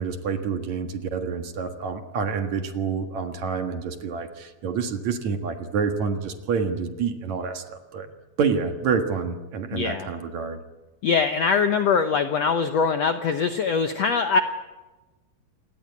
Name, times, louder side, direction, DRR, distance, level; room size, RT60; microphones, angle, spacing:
voice 1, 0.0-8.1 8.4-10.6, right 5 dB, 55° right, 6 dB, 2.6 m, -28 dB
voice 2, 9.7-10.1 11.0-14.4, left 5 dB, 70° left, 8 dB, 1.6 m, -22 dB
27.5 x 19.0 x 9.6 m, 1.2 s
omnidirectional pair, 4.3 m